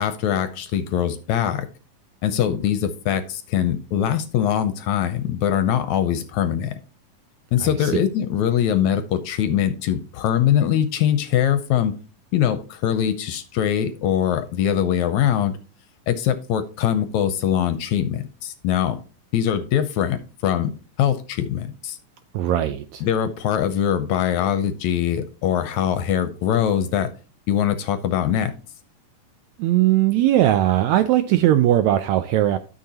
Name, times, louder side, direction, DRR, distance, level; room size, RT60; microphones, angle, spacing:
voice 1, 0.0-1.7 2.2-6.7 7.5-11.9 12.3-15.6 16.1-19.0 19.3-20.7 21.0-22.0 23.0-27.1 27.5-28.5, left 9 dB, 75° left, 1.8 m, -22 dB
voice 2, 7.6-8.0 22.3-23.0 29.6-32.6, right 13 dB, 85° right, 1.6 m, -19 dB
12.5 x 6.6 x 2.9 m
omnidirectional pair, 3.7 m